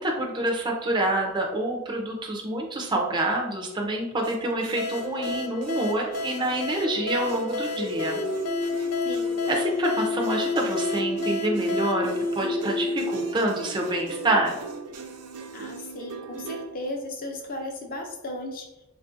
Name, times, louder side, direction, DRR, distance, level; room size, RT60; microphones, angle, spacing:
voice 1, 0.0-8.2 9.5-14.6, right 1 dB, 20° right, 0 dB, 0.4 m, -27 dB
sound 1, 4.2-16.7, right 4 dB, 80° right, 0.5 m, -40 dB
sound 2, 4.8-13.2, left 3 dB, 85° left, 0.4 m, -35 dB
sound 3, 6.9-14.2, left 3 dB, 65° left, 0.9 m, -30 dB
voice 2, 9.0-9.4 15.5-18.7, left 1 dB, 40° left, 2 dB, 0.6 m, -35 dB
3.5 x 2.4 x 2.6 m, 0.91 s
head